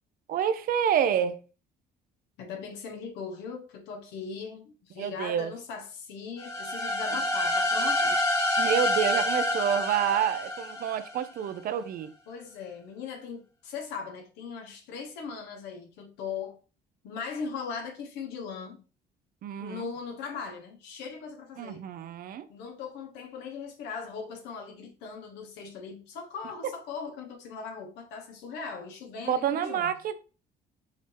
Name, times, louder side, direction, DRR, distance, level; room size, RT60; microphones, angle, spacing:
voice 1, 0.3-1.4 5.0-5.5 8.6-12.1 19.4-19.9 21.6-22.4 29.2-30.1, right 9 dB, 60° right, 0.6 m, -28 dB
voice 2, 2.4-8.2 12.3-16.6 17.0-18.8 19.6-21.9 22.5-30.0, left 5 dB, 85° left, 1.3 m, -39 dB
sound 1, 6.4-11.2, left 1 dB, 20° left, 1.3 m, -27 dB
5.0 x 2.8 x 3.3 m
cardioid pair, 110°, 17 cm